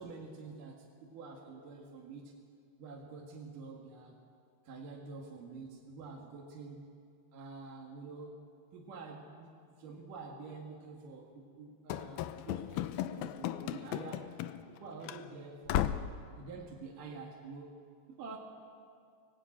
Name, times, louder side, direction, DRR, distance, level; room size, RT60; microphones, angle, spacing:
voice 1, 0.0-2.4 2.8-4.2 4.6-7.0 7.3-8.4 8.7-16.0 16.3-17.8 18.1-18.4, right 4 dB, 60° right, -1 dB, 3.2 m, -48 dB
Run / Slam, 11.9-14.8 15.0-15.2 15.7-16.2, left 12 dB, 80° left, 2.4 m, -35 dB
24.0 x 19.5 x 8.8 m, 2.3 s
omnidirectional pair, 4.7 m